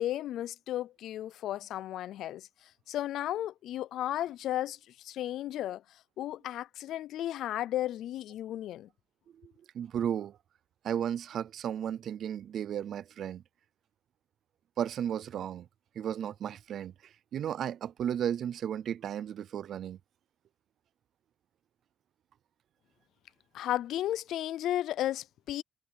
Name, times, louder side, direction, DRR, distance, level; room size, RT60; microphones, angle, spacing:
voice 1, 0.0-2.5 2.9-8.9 23.5-25.6, left 13 dB, 80° left, 0.4 m, -34 dB
voice 2, 9.4-10.4 10.8-13.4 14.8-15.7 16.0-16.9 17.3-20.0, right 9 dB, 55° right, 0.5 m, -34 dB
cardioid pair, 175°, 0 cm